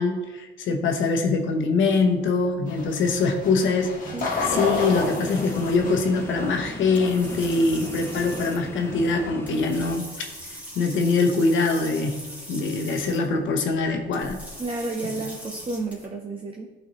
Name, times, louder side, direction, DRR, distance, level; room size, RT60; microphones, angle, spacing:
voice 1, 0.0-3.9 4.4-14.4, left 3 dB, 75° left, 4 dB, 0.9 m, -23 dB
sound 1, 1.2-16.1, equal, 10° right, 2.2 m, -43 dB
sound 2, 2.7-9.3, left 2 dB, 40° left, 1.6 m, -32 dB
sound 3, 4.2-10.0, left 2 dB, 10° left, 0.7 m, -38 dB
voice 2, 14.6-16.7, right 3 dB, 25° right, 1 dB, 0.8 m, -31 dB
11.5 x 4.2 x 3.1 m, 1.2 s
cardioid pair, 90°, 20 cm